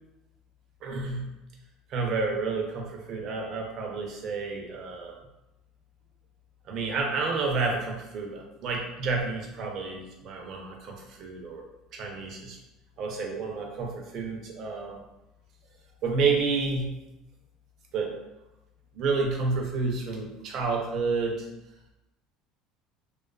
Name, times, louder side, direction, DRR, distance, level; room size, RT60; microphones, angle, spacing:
voice 1, 0.8-1.3 1.9-5.1 6.7-11.6 11.9-12.6 13.0-15.0 16.0-16.9 17.9-18.1 18.9-21.5, right 4 dB, 55° right, 1 dB, 0.6 m, -30 dB
2.4 x 2.3 x 2.3 m, 0.95 s
supercardioid pair, 105°, 0 cm